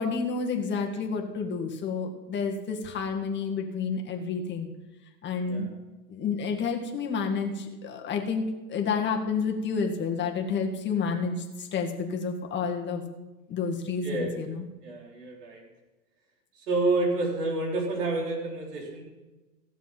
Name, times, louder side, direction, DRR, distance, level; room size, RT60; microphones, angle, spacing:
voice 1, 0.0-4.7 5.2-5.7 6.1-8.4 8.7-13.0 13.5-14.6, left 5 dB, 20° left, 2 dB, 1.8 m, -30 dB
voice 2, 14.0-14.4 14.8-15.6 16.7-19.0, right 2 dB, 70° right, -1 dB, 4.3 m, -29 dB
16.0 x 7.2 x 5.9 m, 1.1 s
hypercardioid pair, 120°, 49 cm